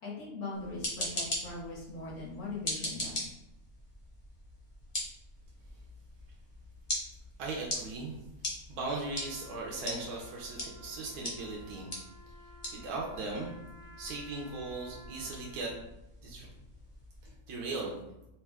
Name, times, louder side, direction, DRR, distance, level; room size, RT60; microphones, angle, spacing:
voice 1, 0.0-3.3, left 3 dB, 75° left, -7 dB, 1.9 m, -41 dB
sound 1, 0.5-17.3, left 1 dB, 25° left, 0.9 m, -42 dB
voice 2, 7.4-8.2 8.4-11.9 12.7-13.6 14.0-15.7 16.2-16.5 17.2-18.0, right 3 dB, 80° right, -2 dB, 1.2 m, -38 dB
Trumpet, 8.9-15.9, right 1 dB, 50° right, 0.5 m, -55 dB
Telephone, 9.7-11.7, left 1 dB, 5° right, 0.8 m, -58 dB
4.5 x 2.6 x 3.4 m, 0.90 s
omnidirectional pair, 1.6 m